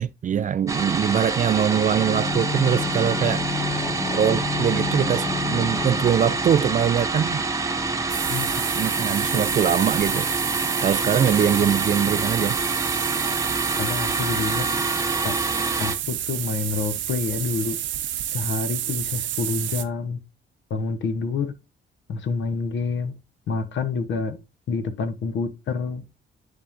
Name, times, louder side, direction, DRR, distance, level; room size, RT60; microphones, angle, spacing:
voice 1, 0.0-3.4 4.1-7.4 8.7-10.3 10.8-12.6, right 8 dB, 40° right, 0.4 m, -22 dB
sound 1, 0.7-16.0, right 3 dB, 15° right, 0.9 m, -27 dB
sound 2, 1.9-7.6 7.9-8.0, left 5 dB, 25° left, 1.3 m, -31 dB
sound 3, 8.1-19.8, right 11 dB, 70° right, 0.8 m, -30 dB
voice 2, 13.8-14.7 15.2-15.3 15.8-17.8 18.3-20.2 20.7-21.5 22.1-23.1 23.5-24.4 24.7-26.0, left 4 dB, 70° left, 1.1 m, -27 dB
10.0 x 3.7 x 2.7 m
cardioid pair, 90°, 20 cm